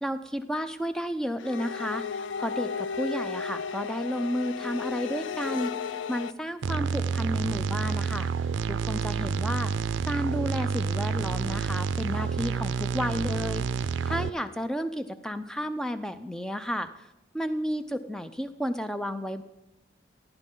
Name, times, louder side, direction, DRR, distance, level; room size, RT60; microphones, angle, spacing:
voice 1, 0.0-9.7 10.0-16.9 17.3-19.4, equal, 5° left, 10 dB, 0.4 m, -32 dB
sound 1, 1.4-6.3, left 6 dB, 85° left, 0.4 m, -34 dB
sound 2, 6.6-14.3, right 5 dB, 85° right, 0.4 m, -29 dB
15.5 x 9.9 x 3.8 m, 1.0 s
head